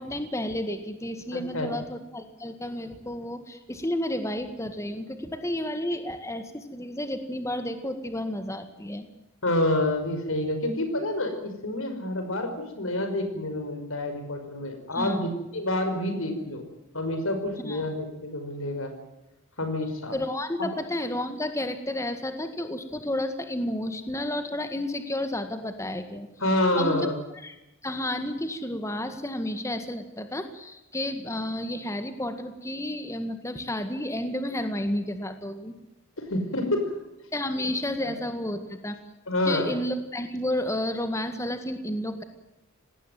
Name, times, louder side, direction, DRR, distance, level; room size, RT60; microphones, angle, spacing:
voice 1, 0.0-9.1 14.9-15.3 17.6-17.8 20.1-26.3 26.8-27.1 27.3-27.5 27.8-35.7 37.3-39.0 39.5-42.2, left 1 dB, 15° left, 8 dB, 1.9 m, -31 dB
voice 2, 1.3-1.7 9.4-16.7 16.9-18.9 19.6-20.2 20.6-20.7 26.4-27.1 36.2-36.9 38.0-38.1 39.3-39.7, left 1 dB, 75° left, 7 dB, 5.5 m, -28 dB
19.5 x 17.5 x 9.3 m, 0.93 s
head